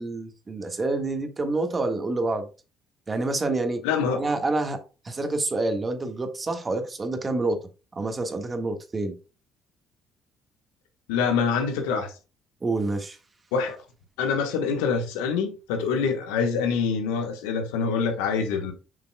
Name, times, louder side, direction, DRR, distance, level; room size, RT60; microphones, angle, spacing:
voice 1, 0.0-2.5 3.1-3.8 4.1-4.8 5.0-7.7 7.9-9.2 12.6-13.2, right 2 dB, 30° right, 1.6 m, -27 dB
voice 2, 3.8-4.2 11.1-12.1 13.5-13.8 14.2-18.7, left 5 dB, 85° left, 1.3 m, -25 dB
7.5 x 5.8 x 2.3 m
hypercardioid pair, 60°, 0 cm